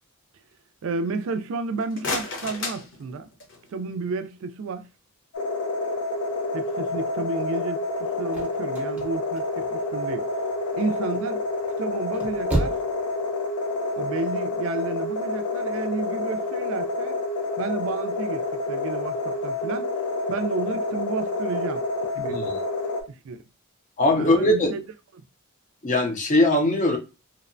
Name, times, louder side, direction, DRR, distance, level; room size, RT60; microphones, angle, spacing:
voice 1, 0.8-3.3 3.7-4.9 6.5-10.2 10.7-11.4 11.8-12.8 14.0-17.2 17.6-19.9 20.3-21.8 22.1-22.4 23.2-23.4 24.2-24.8, right 4 dB, 60° right, 0.3 m, -31 dB
sound 1, 1.6-3.7, left 3 dB, 55° left, 0.8 m, -33 dB
sound 2, 5.3-23.0, left 2 dB, 85° left, 0.6 m, -28 dB
sound 3, 8.3-10.2 10.6-11.1 11.9-13.0 13.3-13.4, right 1 dB, 5° right, 0.6 m, -30 dB
voice 2, 24.0-24.7 25.8-27.0, left 1 dB, 35° left, 0.5 m, -20 dB
2.8 x 2.1 x 2.5 m
head